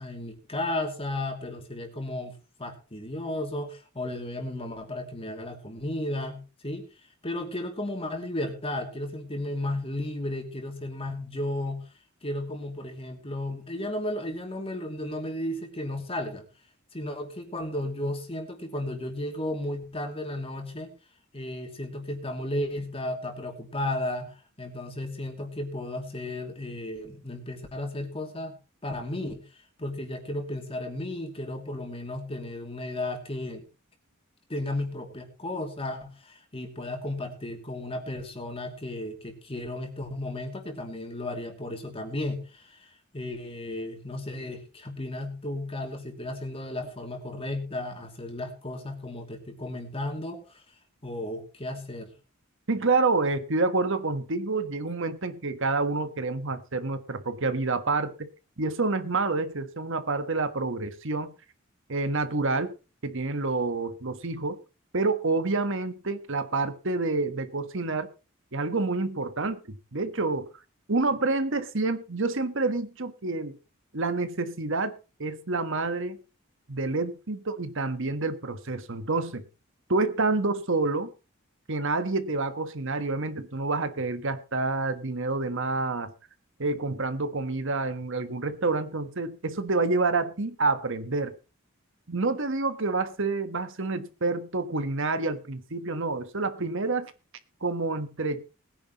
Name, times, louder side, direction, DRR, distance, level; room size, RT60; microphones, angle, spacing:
voice 1, 0.0-2.3 2.6-6.9 7.2-11.9 12.2-16.5 16.9-20.9 21.3-28.6 28.8-29.4 29.8-33.6 34.5-50.6 51.0-52.1, left 1 dB, 30° left, 3 dB, 2.8 m, -34 dB
voice 2, 52.7-58.3 58.6-61.3 61.9-62.7 63.0-64.6 64.9-68.1 68.5-70.5 70.9-73.6 73.9-74.9 75.2-76.2 76.7-79.4 79.9-81.1 81.7-86.1 86.6-91.3 92.1-97.1 97.6-98.4, right 3 dB, 65° right, 10 dB, 1.4 m, -28 dB
20.0 x 10.0 x 3.1 m, 0.31 s
head